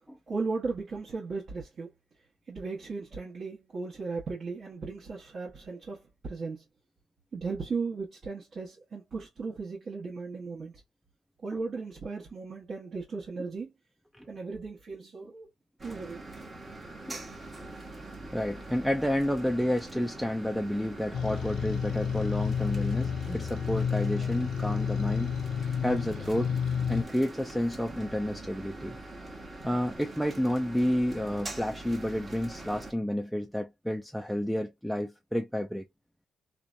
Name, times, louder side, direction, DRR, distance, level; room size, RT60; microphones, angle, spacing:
voice 1, 0.3-1.9 2.5-6.6 7.3-10.7 11.4-13.7 14.3-15.5 15.8-16.3, right 4 dB, 50° right, 1.0 m, -36 dB
sound 1, 15.8-32.9, right 2 dB, 25° right, 1.0 m, -43 dB
voice 2, 18.3-25.3 25.8-26.5 26.9-29.0 29.6-35.8, equal, ahead, 0.3 m, -30 dB
sound 2, 21.1-27.0, left 7 dB, 70° left, 0.5 m, -30 dB
2.7 x 2.2 x 2.4 m
cardioid pair, 105°, 0 cm